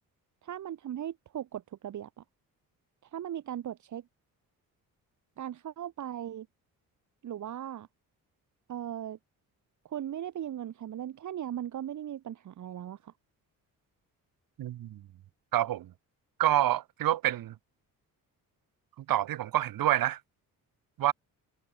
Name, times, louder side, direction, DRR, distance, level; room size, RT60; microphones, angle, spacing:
voice 1, 0.4-2.1 3.1-4.0 5.4-6.5 7.2-7.9 8.7-9.2 9.9-13.1, right 10 dB, 60° right, 2.3 m, -38 dB
voice 2, 14.6-15.0 15.5-15.9 16.4-17.6 19.1-20.2 21.0-21.1, right 13 dB, 80° right, 4.1 m, -27 dB
cardioid pair, 140°, 34 cm